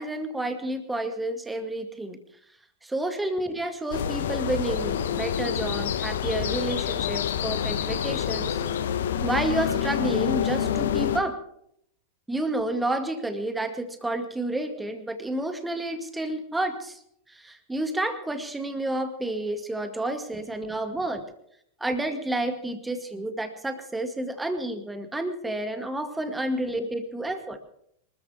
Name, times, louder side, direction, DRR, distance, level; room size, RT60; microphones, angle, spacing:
voice 1, 0.0-2.2 2.8-8.6 9.2-11.4 12.3-17.0 17.3-21.2 21.8-27.6, right 1 dB, 5° right, 8 dB, 2.0 m, -30 dB
sound 1, 3.9-11.2, left 9 dB, 60° left, 1.3 m, -27 dB
26.5 x 13.5 x 3.5 m, 0.71 s
figure-of-eight pair, 90°, 0 cm